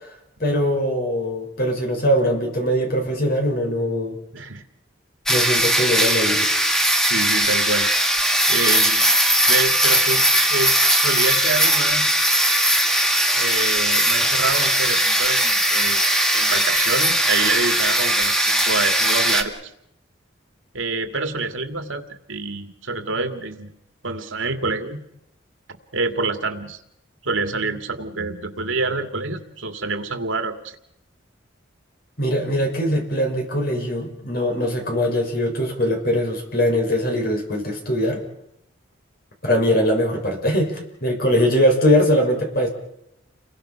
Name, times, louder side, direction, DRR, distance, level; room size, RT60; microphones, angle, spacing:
voice 1, 0.4-4.2 5.3-6.5 32.2-38.2 39.4-42.7, equal, 50° left, 2 dB, 6.2 m, -21 dB
voice 2, 4.3-4.6 7.0-7.9 8.5-9.1 9.5-12.3 13.3-16.0 16.3-19.6 20.7-23.7 24.0-25.0 25.9-26.8 27.2-30.8, right 3 dB, 85° right, 7 dB, 2.4 m, -27 dB
sound 1, 5.3-19.4, right 1 dB, 5° left, 1.7 m, -19 dB
30.0 x 22.0 x 5.8 m, 0.80 s
head